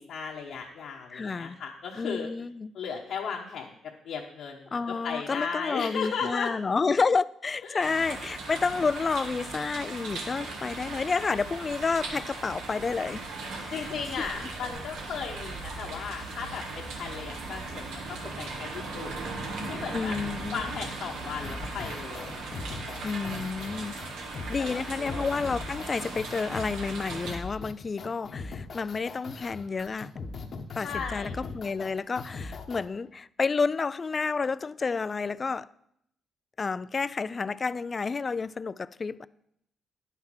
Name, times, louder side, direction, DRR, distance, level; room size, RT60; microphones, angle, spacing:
voice 1, 0.0-2.3 2.7-3.8 4.0-6.5 7.6-7.9 13.7-19.1 19.7-20.2 20.5-22.5 24.3-25.3 30.8-31.4, left 6 dB, 70° left, 1.1 m, -36 dB
voice 2, 1.1-1.6 2.0-2.7 4.7-13.3 13.6-13.8 19.9-20.6 23.0-24.0 24.5-30.1 30.7-35.7 36.6-39.3, left 4 dB, 35° left, 0.3 m, -30 dB
sound 1, 7.8-27.4, right 3 dB, 85° right, 1.8 m, -38 dB
sound 2, 21.4-32.9, left 4 dB, 50° left, 1.0 m, -40 dB
10.0 x 5.7 x 6.1 m
cardioid pair, 90°, 0 cm